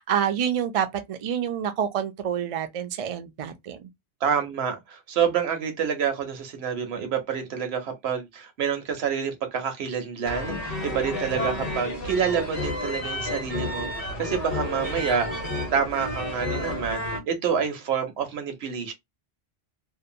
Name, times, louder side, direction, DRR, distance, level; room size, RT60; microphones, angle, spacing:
voice 1, 0.0-3.9, right 9 dB, 55° right, 0.4 m, -27 dB
voice 2, 4.2-15.3 15.7-18.9, right 7 dB, 80° right, 1.0 m, -28 dB
sound 1, 10.2-17.2, left 1 dB, 40° left, 0.9 m, -31 dB
2.7 x 2.1 x 2.6 m
omnidirectional pair, 1.1 m